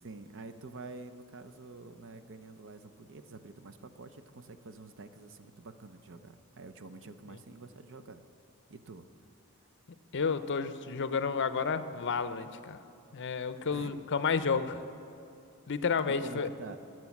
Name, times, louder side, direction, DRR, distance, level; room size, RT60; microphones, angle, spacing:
voice 1, 0.0-8.2 8.7-9.1 13.7-14.0 16.2-16.8, right 3 dB, 60° right, 9 dB, 0.8 m, -48 dB
voice 2, 10.1-12.8 13.1-14.8 15.7-16.5, left 5 dB, 55° left, 12 dB, 0.6 m, -31 dB
21.5 x 7.7 x 7.2 m, 2.6 s
head